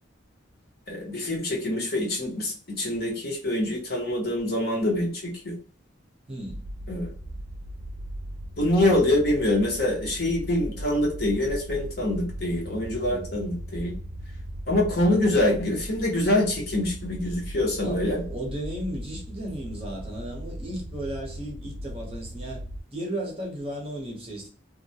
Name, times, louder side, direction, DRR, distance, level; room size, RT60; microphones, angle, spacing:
voice 1, 0.9-5.5 6.9-7.1 8.6-13.9 14.7-18.2, left 1 dB, 50° left, 0.8 m, -25 dB
voice 2, 6.3-6.6 12.9-13.2 17.8-22.6 22.9-24.5, right 1 dB, 30° right, 0.8 m, -35 dB
sound 1, 6.5-22.8, equal, 65° right, 0.4 m, -38 dB
2.3 x 2.1 x 2.7 m
head